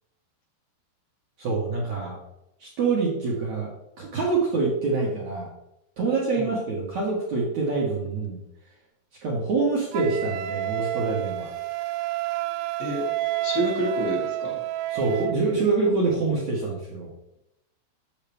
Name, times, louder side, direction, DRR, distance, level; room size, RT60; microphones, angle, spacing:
voice 1, 1.4-2.2 2.6-3.7 4.0-5.5 6.0-8.4 9.2-11.5 14.9-17.1, right 3 dB, 70° right, -5 dB, 1.7 m, -25 dB
Wind instrument woodwind instrument, 9.9-15.4, right 14 dB, 85° right, 3.3 m, -29 dB
voice 2, 13.4-14.6, equal, 50° left, -1 dB, 3.1 m, -28 dB
9.2 x 7.5 x 3.5 m, 0.86 s
omnidirectional pair, 6.0 m